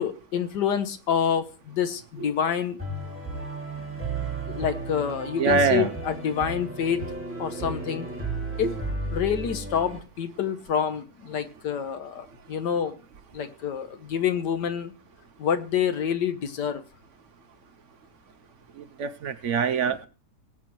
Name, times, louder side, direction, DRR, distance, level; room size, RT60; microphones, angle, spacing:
voice 1, 0.0-2.8 4.5-7.0 7.4-8.1 8.6-8.7 9.1-13.0 13.3-14.9 15.4-16.8, left 8 dB, 75° left, 1.6 m, -27 dB
sound 1, 2.8-10.0, right 2 dB, 5° right, 2.0 m, -34 dB
voice 2, 5.4-5.9 8.6-8.7 18.7-20.1, right 5 dB, 60° right, 0.8 m, -24 dB
19.5 x 8.4 x 3.1 m
omnidirectional pair, 1.8 m